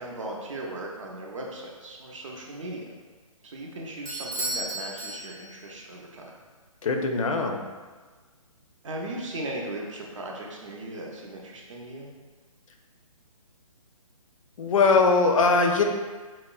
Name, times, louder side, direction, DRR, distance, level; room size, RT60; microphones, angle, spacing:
voice 1, 0.0-2.8 3.4-6.2 8.8-12.1, right 1 dB, 60° right, -1 dB, 0.6 m, -37 dB
Bell / Doorbell, 4.1-5.8, right 2 dB, 15° right, 0.6 m, -34 dB
voice 2, 6.8-7.6 14.6-15.8, left 4 dB, 65° left, 3 dB, 0.4 m, -21 dB
4.1 x 2.0 x 2.3 m, 1.4 s
figure-of-eight pair, 145°, 18 cm